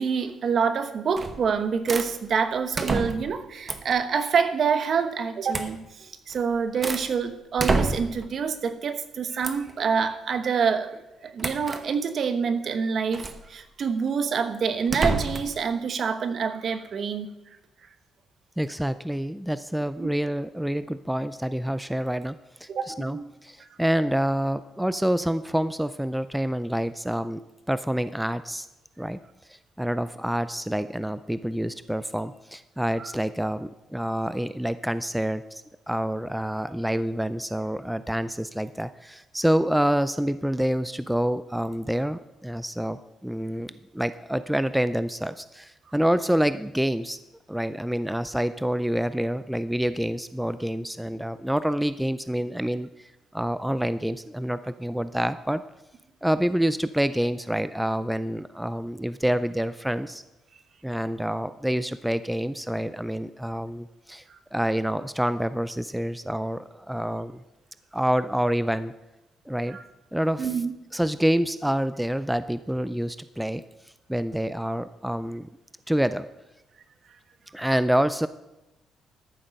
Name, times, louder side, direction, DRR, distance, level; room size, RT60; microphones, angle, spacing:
voice 1, 0.0-17.3 20.0-20.1 22.7-23.3 33.0-33.1 69.7-69.8 70.4-70.7, right 6 dB, 55° right, 10 dB, 1.1 m, -27 dB
sound 1, 1.2-1.5 1.9-2.1 2.7-3.4 3.7-4.0 5.5-5.7 6.3-7.1 7.6-8.3 9.4-9.7 11.4-11.8 13.1-13.4 14.9-15.5, right 3 dB, 30° right, 1.0 m, -28 dB
voice 2, 18.6-27.4 27.7-28.7 29.0-29.2 29.5-47.2 47.5-55.6 56.2-60.2 60.8-64.2 64.5-67.4 67.9-68.9 69.5-69.8 70.1-70.5 70.9-73.6 74.1-75.5 75.9-76.3 77.5-78.3, equal, 5° right, 13 dB, 0.4 m, -27 dB
13.5 x 7.4 x 5.3 m, 0.97 s
cardioid pair, 90°, 0 cm